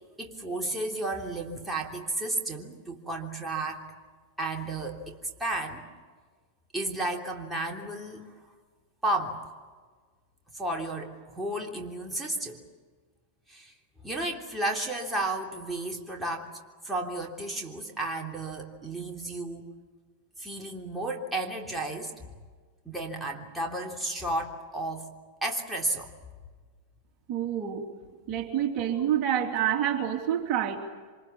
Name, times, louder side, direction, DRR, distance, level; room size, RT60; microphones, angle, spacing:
voice 1, 0.2-3.8 4.4-5.8 6.7-8.3 9.0-9.4 10.5-12.6 13.5-13.7 14.0-16.6 16.8-19.7 20.4-22.1 22.8-25.1 25.4-26.1, right 2 dB, 5° right, 0 dB, 3.2 m, -33 dB
voice 2, 27.3-27.9 28.3-30.8, right 10 dB, 40° right, 3 dB, 3.1 m, -27 dB
27.5 x 26.5 x 7.3 m, 1.5 s
figure-of-eight pair, 90°, 0 cm